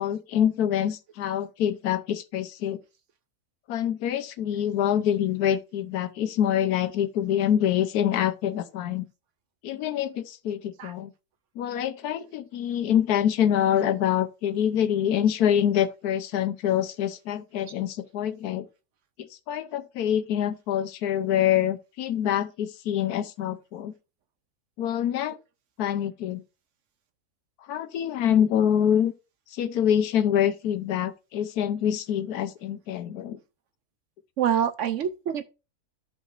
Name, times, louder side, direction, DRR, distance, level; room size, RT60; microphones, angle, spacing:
voice 1, 0.0-2.8 3.7-9.0 9.6-11.1 11.6-18.7 19.5-23.9 24.8-25.4 25.8-26.4 27.7-29.1 29.5-33.4, left 10 dB, 85° left, 1.2 m, -25 dB
voice 2, 34.4-35.5, right 9 dB, 65° right, 0.8 m, -26 dB
14.0 x 5.0 x 2.5 m
omnidirectional pair, 1.6 m